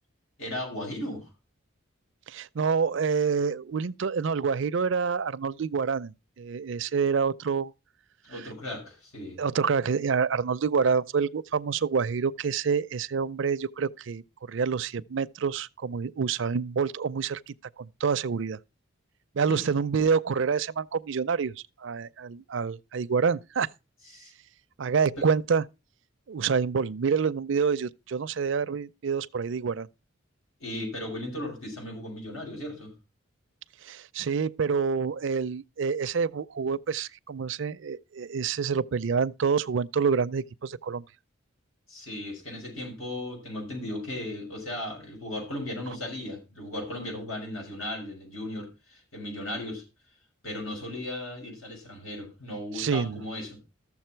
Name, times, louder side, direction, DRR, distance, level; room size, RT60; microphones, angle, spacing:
voice 1, 0.4-1.2 8.2-9.4 19.5-19.7 24.1-24.3 25.2-25.3 30.6-32.9 41.9-49.8 50.4-53.6, left 1 dB, 90° left, 6.4 m, -36 dB
voice 2, 2.3-7.7 9.4-18.6 19.4-21.5 21.8-23.7 24.8-25.6 26.3-29.9 33.8-41.0 52.8-53.2, right 5 dB, 65° right, 0.5 m, -27 dB
13.5 x 7.2 x 4.4 m
head